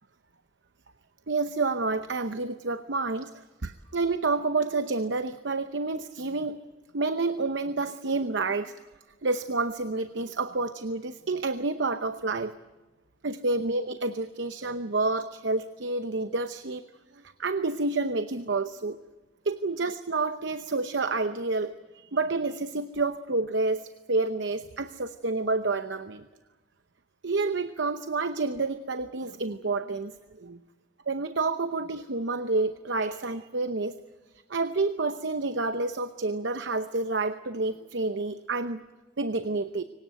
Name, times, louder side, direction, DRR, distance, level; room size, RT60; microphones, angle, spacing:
voice 1, 1.3-6.6 6.9-8.7 9.2-12.5 13.2-16.8 17.1-19.0 19.4-26.3 27.2-30.6 31.1-34.0 34.5-38.8 39.2-39.8, right 3 dB, 65° right, 10 dB, 0.8 m, -29 dB
24.0 x 19.0 x 9.0 m, 1.2 s
head